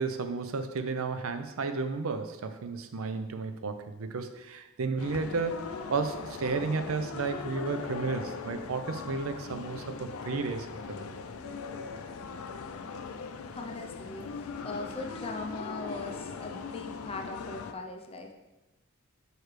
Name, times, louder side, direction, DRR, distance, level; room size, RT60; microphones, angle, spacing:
voice 1, 0.0-5.6 5.9-11.1, right 4 dB, 75° right, 8 dB, 0.5 m, -33 dB
sound 1, 5.0-17.7, left 5 dB, 85° left, 0.4 m, -40 dB
voice 2, 13.5-18.3, left 3 dB, 30° left, 3 dB, 0.6 m, -40 dB
6.5 x 4.6 x 3.3 m, 1.0 s
head